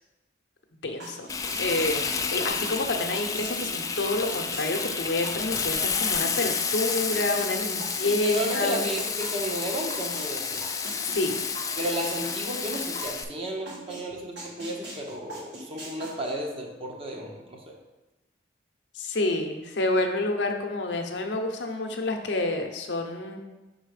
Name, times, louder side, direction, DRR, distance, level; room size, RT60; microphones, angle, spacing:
voice 1, 0.8-1.3 1.6-8.9 11.1-11.3 18.9-23.4, left 2 dB, 75° left, 4 dB, 0.7 m, -28 dB
sound 1, 1.0-2.8 3.1-10.3 10.6-14.0 14.4-16.3, right 1 dB, 70° right, 2.0 m, -41 dB
Frying (food), 1.3-13.2, left 5 dB, 20° left, 0.3 m, -30 dB
voice 2, 8.2-10.6 11.8-17.7, right 1 dB, 35° right, 1 dB, 0.9 m, -33 dB
5.6 x 3.9 x 4.9 m, 1.1 s
head